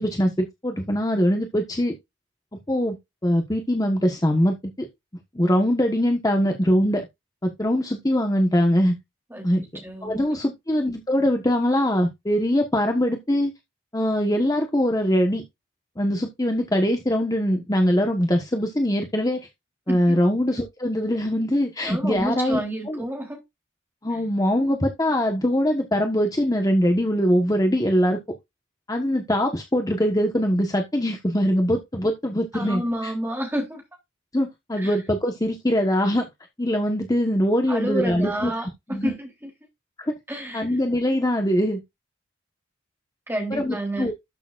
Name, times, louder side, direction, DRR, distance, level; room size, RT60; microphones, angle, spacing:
voice 1, 0.0-1.9 2.7-3.0 3.2-4.9 5.3-7.1 7.4-8.9 9.4-13.5 13.9-15.4 16.0-19.5 19.9-22.6 22.9-23.0 24.0-28.2 28.9-33.1 34.3-36.3 36.6-38.5 38.9-39.1 40.0-40.1 40.5-41.8 43.5-44.1, equal, 20° left, 1.2 m, -22 dB
voice 2, 9.8-10.2 19.9-20.2 21.8-23.4 32.5-33.8 34.8-35.0 37.7-39.5 40.3-40.6 43.3-44.1, right 1 dB, 10° right, 3.4 m, -30 dB
12.5 x 6.9 x 2.5 m
head